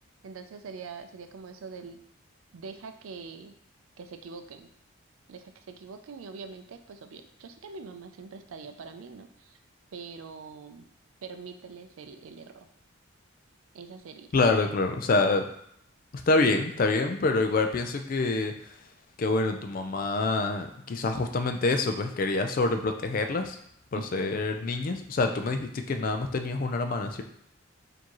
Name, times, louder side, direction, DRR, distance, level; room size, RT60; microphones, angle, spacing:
voice 1, 0.2-2.0 2.5-3.5 4.0-4.7 5.3-9.6 9.9-10.9 11.2-12.7 13.7-14.3 23.9-24.4, right 5 dB, 80° right, 7 dB, 0.4 m, -43 dB
voice 2, 14.3-15.5 16.1-18.7 19.2-23.6 23.9-27.2, left 3 dB, 45° left, 6 dB, 0.4 m, -26 dB
4.5 x 2.7 x 3.0 m, 0.69 s
head